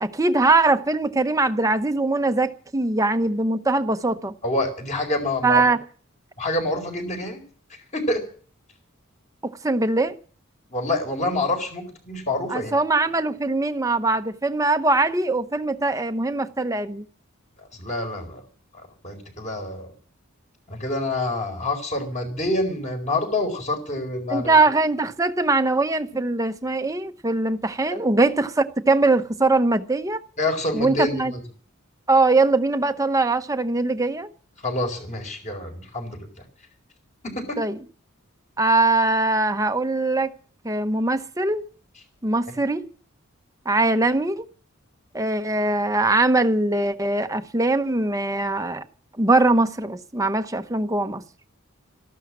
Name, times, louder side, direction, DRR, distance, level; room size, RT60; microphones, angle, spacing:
voice 1, 0.0-4.3 5.4-5.8 9.4-10.1 12.5-17.0 24.3-30.2 30.7-31.3 32.1-34.3 37.6-37.8 38.6-40.3 40.6-41.6 42.2-42.8 43.7-44.4 45.1-48.8 49.2-51.2, right 2 dB, 15° right, 0.9 m, -21 dB
voice 2, 4.4-5.6 6.4-7.4 7.9-8.2 10.7-12.7 17.6-18.4 18.7-19.9 20.7-24.5 27.9-28.0 30.4-31.4 34.6-36.3 37.3-37.6 42.5-42.6, left 2 dB, 35° left, 4.4 m, -27 dB
14.5 x 12.0 x 7.4 m
head